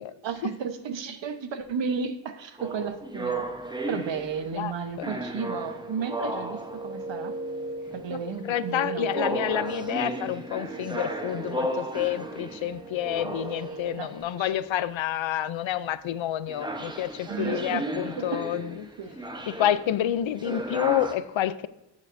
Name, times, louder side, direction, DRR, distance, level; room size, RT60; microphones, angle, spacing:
voice 1, 0.2-3.5 3.9-7.4 7.9-9.1 13.6-14.6 17.3-17.9 18.2-18.5 19.0-19.2, right 6 dB, 75° right, 9 dB, 1.1 m, -33 dB
sound 1, 2.6-4.7 5.0-7.1 7.9-8.3 9.1-14.5 16.5-21.1, right 1 dB, 10° right, 0.9 m, -34 dB
voice 2, 4.5-5.1 8.1-8.2 8.4-18.9 19.5-21.7, left 11 dB, 85° left, 15 dB, 0.6 m, -29 dB
sound 2, 6.4-14.2, right 2 dB, 45° right, 1.4 m, -38 dB
13.0 x 7.3 x 2.6 m, 0.95 s
wide cardioid pair, 120°, 45 cm